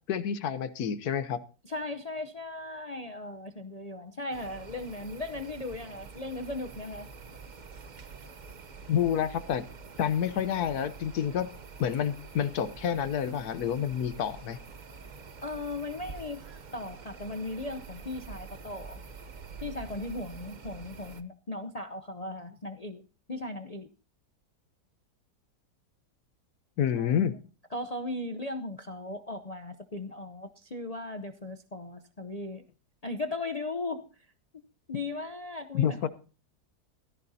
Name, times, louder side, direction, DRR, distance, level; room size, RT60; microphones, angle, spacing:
voice 1, 0.1-1.4 8.9-9.6 10.0-11.5 11.8-14.6 26.8-27.4 35.7-36.1, left 9 dB, 70° left, 13 dB, 1.3 m, -28 dB
voice 2, 1.6-7.1 15.4-19.0 19.6-23.0 23.3-23.9 27.0-27.2 27.7-32.6 33.0-34.3 34.9-36.1, left 2 dB, 40° left, 5 dB, 0.6 m, -37 dB
sound 1, 4.3-21.2, right 5 dB, 35° right, 0.8 m, -47 dB
17.5 x 14.0 x 2.8 m, 0.35 s
omnidirectional pair, 1.7 m